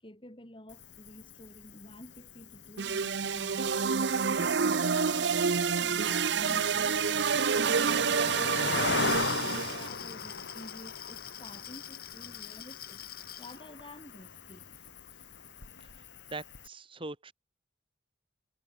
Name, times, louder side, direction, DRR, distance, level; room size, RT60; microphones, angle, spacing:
voice 1, 0.0-4.5 4.8-8.3 8.8-13.0 13.4-14.7, left 1 dB, 30° left, 6.2 m, -50 dB
Cricket, 0.7-16.7, left 4 dB, 75° left, 1.7 m, -39 dB
sound 1, 2.8-9.9, right 6 dB, 70° right, 0.7 m, -28 dB
Glass, 8.6-13.6, left 11 dB, 55° left, 3.2 m, -45 dB
voice 2, 15.8-17.3, right 2 dB, 30° right, 2.5 m, -43 dB
head